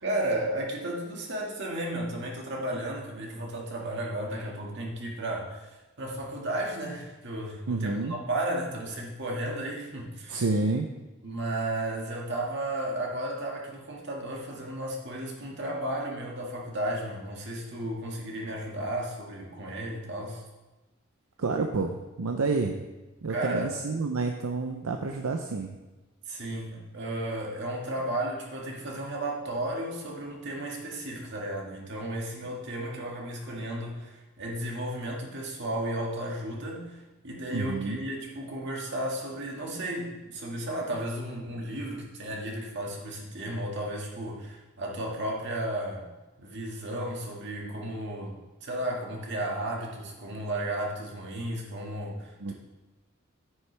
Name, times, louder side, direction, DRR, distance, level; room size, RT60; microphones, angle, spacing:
voice 1, 0.0-10.4 11.2-20.4 23.3-23.7 26.3-46.1 46.4-52.5, right 1 dB, 55° right, -2 dB, 2.0 m, -34 dB
voice 2, 7.7-8.2 10.3-10.9 21.4-22.8 23.2-25.7 37.5-38.0 52.4-52.5, right 3 dB, 90° right, 4 dB, 0.6 m, -29 dB
9.8 x 9.3 x 3.4 m, 1.1 s
head